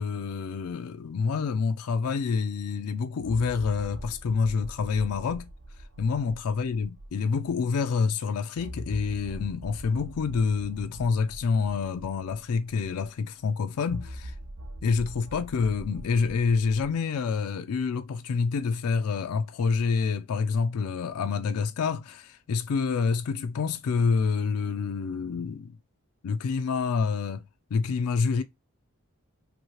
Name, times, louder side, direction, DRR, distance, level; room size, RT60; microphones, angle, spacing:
voice 1, 0.0-5.5 6.0-14.3 14.8-25.8 26.2-28.4, left 5 dB, 80° left, 0.4 m, -27 dB
sound 1, 2.3-2.4 3.2-7.7 8.5-13.2 13.9-16.9, right 1 dB, 60° right, 0.5 m, -43 dB
2.9 x 2.7 x 2.9 m
head